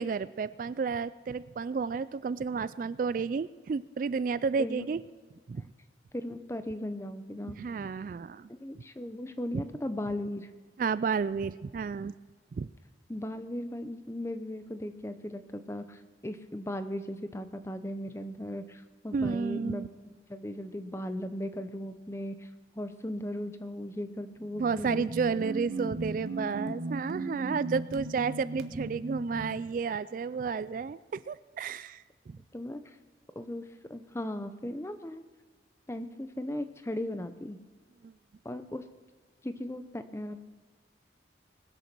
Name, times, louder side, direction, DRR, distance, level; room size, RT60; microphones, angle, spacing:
voice 1, 0.0-5.0 5.5-5.7 7.4-8.5 8.7-8.8 9.5-9.6 10.8-12.1 12.5-12.7 19.1-19.9 24.6-32.4 38.0-38.1, right 5 dB, 50° right, 16 dB, 0.3 m, -32 dB
voice 2, 6.1-7.6 8.5-10.5 13.1-22.5 22.8-25.1 32.5-32.9 33.4-33.6 33.9-35.2 35.9-37.6 38.4-38.8 39.4-40.4, left 1 dB, 15° left, 10 dB, 0.7 m, -37 dB
sound 1, 24.4-29.7, right 2 dB, 70° right, 1.1 m, -37 dB
20.0 x 8.3 x 6.0 m, 1.4 s
head